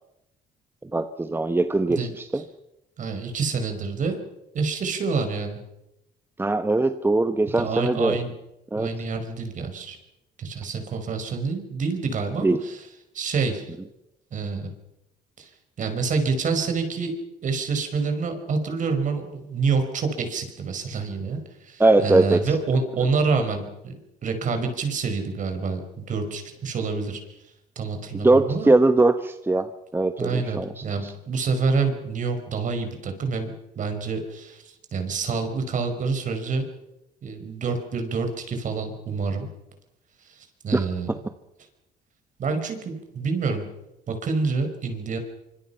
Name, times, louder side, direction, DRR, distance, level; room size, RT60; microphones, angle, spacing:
voice 1, 0.8-2.4 6.4-8.2 8.7-8.9 12.4-12.6 21.8-22.4 28.1-29.7 29.9-31.1 40.7-40.8, right 2 dB, 15° right, 9 dB, 1.1 m, -21 dB
voice 2, 3.0-4.2 4.5-5.6 7.6-8.3 8.8-10.0 10.4-12.8 13.1-13.7 14.3-14.7 15.4-15.5 15.8-17.1 17.4-23.9 24.2-27.2 27.7-28.7 30.2-36.7 37.2-39.5 40.2-41.1 42.4-43.6 44.1-45.2, right 4 dB, 50° right, 6 dB, 5.1 m, -27 dB
25.5 x 25.5 x 5.7 m, 0.90 s
cardioid pair, 110°, 17 cm